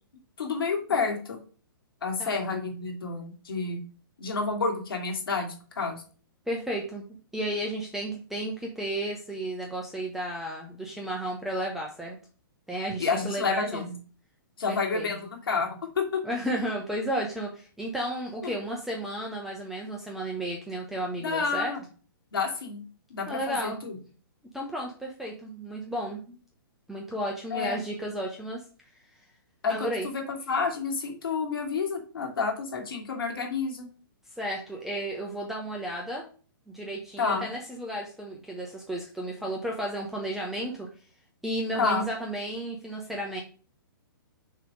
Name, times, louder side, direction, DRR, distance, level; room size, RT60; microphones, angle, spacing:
voice 1, 0.4-1.4 2.0-3.8 4.2-6.0 13.0-13.9 14.6-16.1 18.4-18.5 21.2-21.8 22.3-22.8 23.1-24.0 27.5-27.8 29.6-33.9 37.2-37.5 41.8-42.0, left 4 dB, 75° left, 2 dB, 2.6 m, -29 dB
voice 2, 6.5-7.0 7.3-12.2 12.7-13.8 14.7-15.1 16.2-21.7 23.3-23.8 24.5-26.4 26.9-28.6 29.7-30.1 34.3-36.3 36.7-40.9 41.4-43.4, right 1 dB, ahead, -1 dB, 1.0 m, -33 dB
6.6 x 3.4 x 5.3 m, 0.39 s
hypercardioid pair, 125°, 12 cm